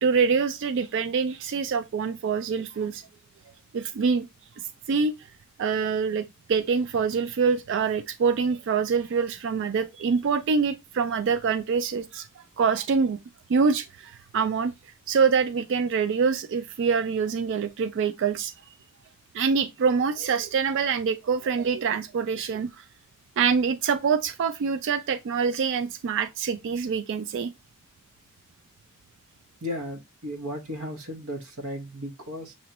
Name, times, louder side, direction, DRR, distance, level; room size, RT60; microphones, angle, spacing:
voice 1, 0.0-3.0 3.7-4.3 4.9-5.1 5.6-13.2 13.5-14.7 15.1-18.5 19.3-22.8 23.4-27.5, right 5 dB, 55° right, 0.3 m, -25 dB
voice 2, 29.6-32.5, equal, 75° right, 1.1 m, -35 dB
6.1 x 3.0 x 2.9 m
head